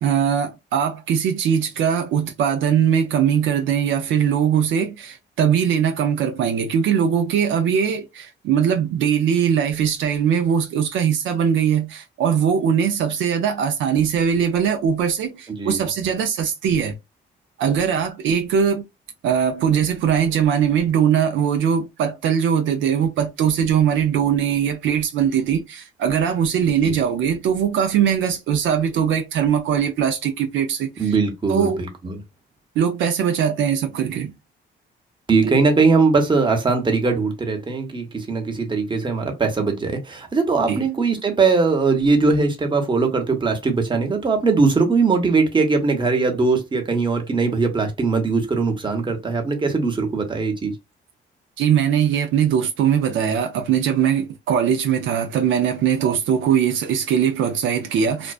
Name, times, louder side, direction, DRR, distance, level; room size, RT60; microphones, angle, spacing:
voice 1, 0.0-17.0 17.6-18.9 19.2-31.1 31.5-31.8 32.8-34.3 35.4-35.6 40.7-40.8 51.6-58.3, right 8 dB, 75° right, 0.5 m, -21 dB
voice 2, 15.5-15.9 26.8-27.0 31.0-32.2 35.3-50.7, right 4 dB, 25° right, 0.8 m, -20 dB
2.4 x 2.2 x 2.3 m
cardioid pair, 90°, 20 cm